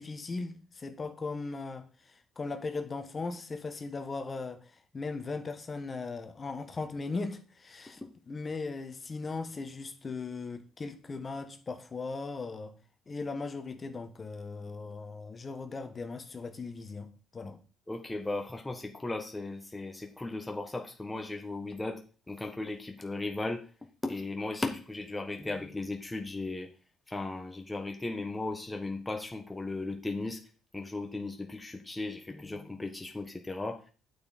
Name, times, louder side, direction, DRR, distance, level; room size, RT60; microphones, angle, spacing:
voice 1, 0.0-8.0 8.3-12.7 13.1-17.6, left 3 dB, 35° left, 1.5 m, -38 dB
voice 2, 17.9-23.7 24.0-26.7 27.1-30.4 30.7-33.8, left 2 dB, 15° left, 1.3 m, -36 dB
8.6 x 7.1 x 4.3 m
supercardioid pair, 65°, 0 cm